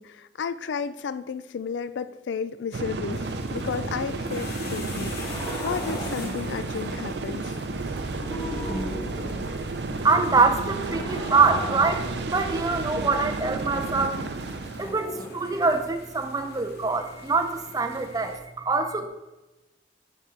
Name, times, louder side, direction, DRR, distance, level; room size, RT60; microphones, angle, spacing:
voice 1, 0.0-7.6, left 6 dB, 90° left, 14 dB, 0.4 m, -33 dB
sound 1, 2.7-14.9, right 3 dB, 70° right, 0.5 m, -32 dB
sound 2, 3.1-18.4, left 4 dB, 60° left, 0.9 m, -45 dB
sound 3, 5.0-6.4 7.9-9.6 10.7-13.4 14.8-15.8, equal, 30° left, 1.9 m, -37 dB
voice 2, 10.0-14.2 14.8-19.1, right 4 dB, 20° right, 7 dB, 0.5 m, -24 dB
9.6 x 4.3 x 3.7 m, 1.1 s
head